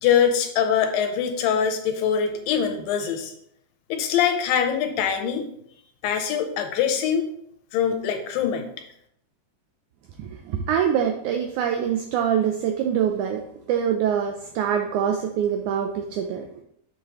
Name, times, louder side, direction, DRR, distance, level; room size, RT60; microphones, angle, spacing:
voice 1, 0.0-3.3 3.9-5.4 6.0-7.3 7.7-8.6, left 8 dB, 80° left, 6 dB, 2.5 m, -23 dB
voice 2, 10.2-16.5, right 8 dB, 85° right, 5 dB, 1.7 m, -24 dB
6.6 x 6.5 x 3.0 m, 0.72 s
omnidirectional pair, 4.0 m